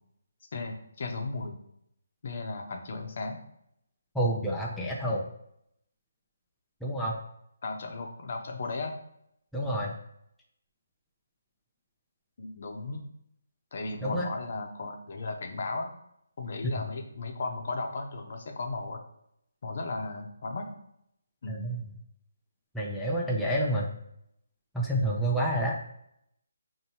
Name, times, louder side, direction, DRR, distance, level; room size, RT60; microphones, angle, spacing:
voice 1, 0.5-1.6 2.2-3.4 7.6-9.0 12.4-13.0 13.7-15.9 16.4-19.0 19.6-20.8 21.4-21.7, left 3 dB, 55° left, 3 dB, 0.7 m, -35 dB
voice 2, 4.1-5.3 6.8-7.2 9.5-9.9 14.0-14.3 16.6-16.7 21.5-21.8 22.7-23.9 24.7-25.8, right 1 dB, ahead, -5 dB, 0.5 m, -28 dB
5.2 x 2.7 x 2.8 m, 0.75 s
figure-of-eight pair, 150°, 0 cm